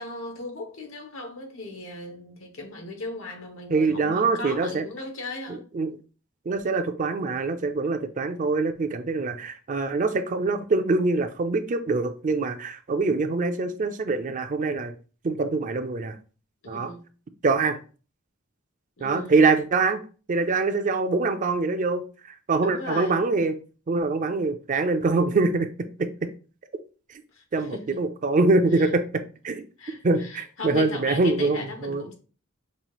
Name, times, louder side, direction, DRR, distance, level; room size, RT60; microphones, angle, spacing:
voice 1, 0.0-5.6 16.6-17.0 19.0-19.4 22.6-23.2 27.3-28.0 28.7-28.9 29.8-32.1, left 2 dB, 85° left, 1.2 m, -37 dB
voice 2, 3.7-4.8 5.5-5.9 6.5-14.9 15.2-16.2 16.7-16.9 17.4-17.8 19.0-20.0 20.3-22.0 22.5-23.5 23.9-26.1 27.5-29.6 30.0-32.0, right 3 dB, 40° right, 0.4 m, -24 dB
5.4 x 2.4 x 3.0 m
head